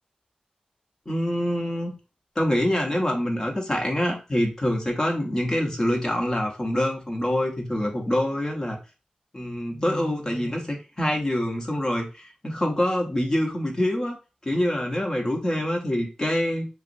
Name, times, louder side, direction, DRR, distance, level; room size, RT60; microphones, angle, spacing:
voice 1, 1.1-1.9 2.4-8.8 9.3-14.2 14.4-16.7, left 1 dB, 25° left, 1 dB, 0.9 m, -25 dB
5.7 x 2.0 x 2.6 m, 0.31 s
wide cardioid pair, 125°, 2 cm